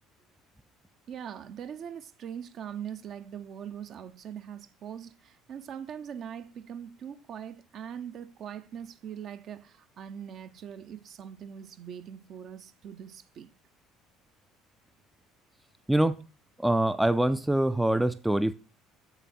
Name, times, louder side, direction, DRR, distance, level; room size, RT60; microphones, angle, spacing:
voice 1, 1.1-13.5, right 8 dB, 45° right, 0.7 m, -41 dB
voice 2, 15.9-16.2 16.6-18.5, right 1 dB, 5° right, 0.5 m, -24 dB
8.0 x 7.2 x 4.2 m
figure-of-eight pair, 60°, 0 cm